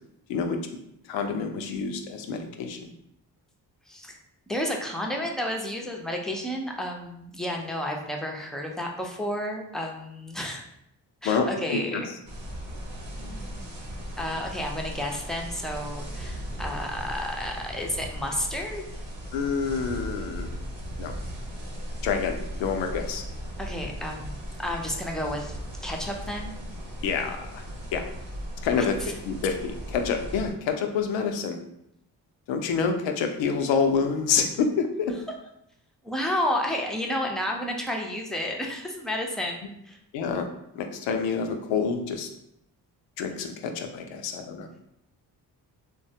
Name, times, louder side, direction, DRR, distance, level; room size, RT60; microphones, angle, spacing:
voice 1, 1.0-2.9 11.2-12.1 19.3-20.5 21.0-21.2 22.0-23.2 27.0-27.6 27.9-28.0 28.6-31.6 32.5-35.1 40.1-40.5 40.7-42.3 43.2-44.7, left 5 dB, 80° left, 5 dB, 0.5 m, -27 dB
voice 2, 3.9-4.2 4.5-10.6 11.2-12.1 14.2-18.8 23.6-26.5 28.7-29.1 36.0-40.0, left 1 dB, ahead, 1 dB, 0.5 m, -31 dB
sound 1, 12.3-30.5, equal, 75° right, 0.9 m, -37 dB
3.2 x 2.1 x 2.7 m, 0.78 s
supercardioid pair, 45°, 44 cm